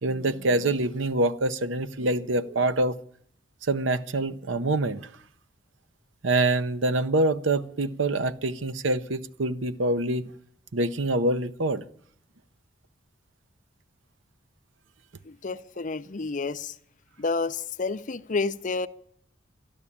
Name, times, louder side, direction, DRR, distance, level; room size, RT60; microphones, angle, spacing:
voice 1, 0.0-3.0 3.6-5.1 6.2-10.2 10.7-11.8, right 2 dB, 90° right, 0.7 m, -25 dB
voice 2, 15.3-16.7 17.2-18.9, left 4 dB, 45° left, 0.6 m, -30 dB
12.5 x 12.5 x 8.5 m
head